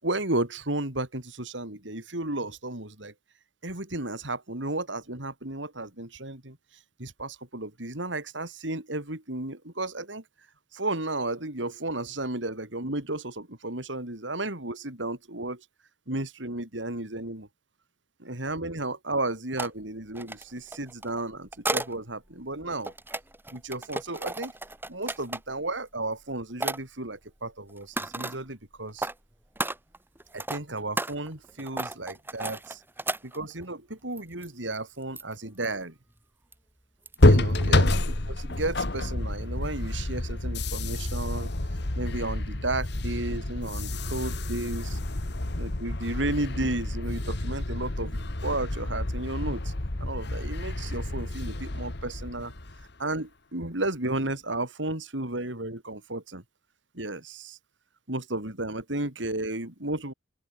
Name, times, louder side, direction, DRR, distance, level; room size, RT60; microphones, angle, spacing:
voice 1, 0.0-3.1 3.6-6.6 7.0-10.2 10.7-15.6 16.1-17.5 18.2-22.9 23.5-24.5 24.9-29.1 30.3-32.8 33.2-35.9 37.3-37.9 38.3-41.5 41.9-45.0 45.6-49.7 50.0-52.5 53.0-56.4 56.9-57.6 58.1-60.1, right 2 dB, 75° right, 4.9 m, -33 dB
sound 1, 19.6-19.7 20.1-21.9 22.6-25.6 26.1-26.3 26.6-26.8 27.7-28.4 28.9-29.1 29.6-33.6 34.2-34.5 34.7-34.8 35.2-35.4 35.6-35.7 36.5-36.6 37.1-37.3 37.6-37.7, right 2 dB, 10° right, 5.8 m, -33 dB
sound 2, 37.2-52.9, left 1 dB, 65° left, 1.9 m, -28 dB
open air
head